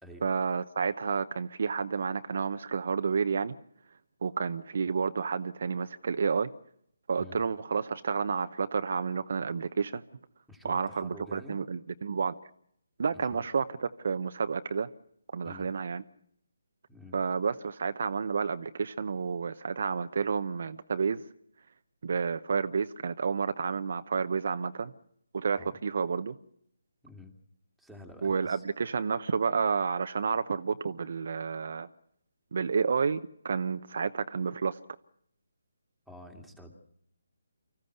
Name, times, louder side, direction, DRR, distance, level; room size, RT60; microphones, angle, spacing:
voice 1, 0.2-3.5 4.2-6.5 7.1-10.0 10.6-12.3 13.0-14.9 15.3-16.0 17.1-21.2 22.0-24.9 25.3-26.4 28.2-31.9 32.5-34.8, right 5 dB, 55° right, 10 dB, 0.8 m, -30 dB
voice 2, 10.5-11.6 13.1-13.4 15.4-15.7 16.9-17.2 25.6-25.8 27.0-27.4 27.8-28.6 36.1-36.7, left 1 dB, ahead, 3 dB, 2.3 m, -49 dB
25.0 x 15.0 x 7.9 m, 0.70 s
hypercardioid pair, 160°, 0 cm